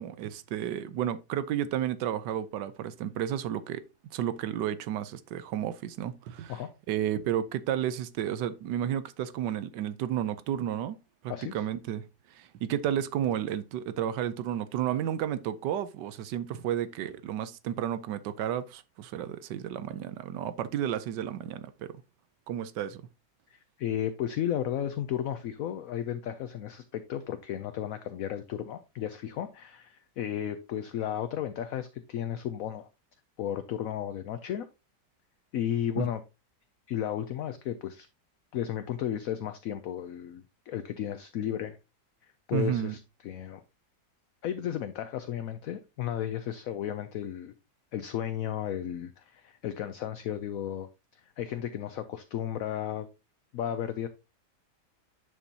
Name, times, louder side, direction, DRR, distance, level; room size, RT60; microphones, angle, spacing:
voice 1, 0.0-6.6 6.9-11.0 11.2-12.0 12.3-22.0 22.5-23.0 36.0-36.1 42.5-42.9, right 10 dB, 85° right, 1.3 m, -32 dB
voice 2, 11.3-11.6 23.5-32.9 33.4-34.7 35.5-36.2 36.9-38.1 38.5-41.8 42.5-43.6 44.4-47.5 47.9-50.9 51.4-53.1 53.5-54.1, left 10 dB, 65° left, 0.9 m, -34 dB
9.8 x 5.3 x 2.8 m
omnidirectional pair, 1.8 m